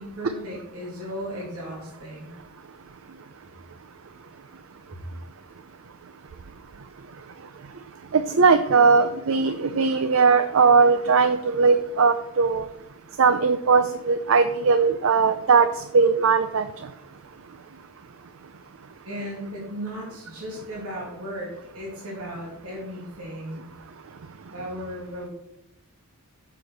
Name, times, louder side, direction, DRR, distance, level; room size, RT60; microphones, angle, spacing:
voice 1, 0.0-2.3 19.0-23.7 24.5-25.3, equal, 80° right, -4 dB, 2.7 m, -36 dB
voice 2, 8.1-12.7 13.2-15.7 15.9-16.7, right 5 dB, 60° right, 11 dB, 0.5 m, -19 dB
11.0 x 7.0 x 4.6 m, 0.82 s
head